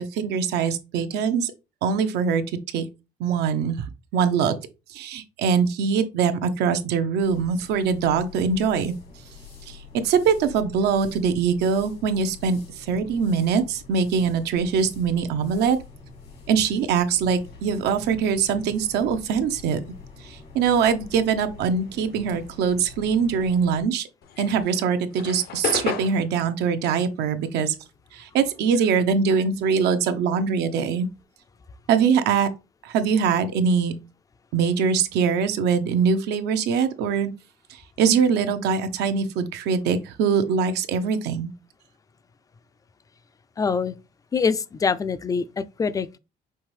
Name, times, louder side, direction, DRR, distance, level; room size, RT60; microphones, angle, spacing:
voice 1, 0.0-1.5 1.8-2.8 3.2-3.9 4.1-4.6 4.9-8.9 9.7-15.8 16.5-19.8 20.2-24.1 24.4-27.7 28.1-31.1 31.9-32.5 32.8-33.9 34.5-37.3 37.7-41.5, right 6 dB, 80° right, 0.6 m, -23 dB
sound 1, 7.2-23.8, left 5 dB, 85° left, 2.1 m, -45 dB
sound 2, 24.2-28.9 29.2-31.2, left 8 dB, 65° left, 0.7 m, -34 dB
voice 2, 43.6-43.9 44.3-46.2, left 5 dB, 20° left, 0.3 m, -24 dB
5.6 x 2.6 x 3.2 m
cardioid pair, 110°, 17 cm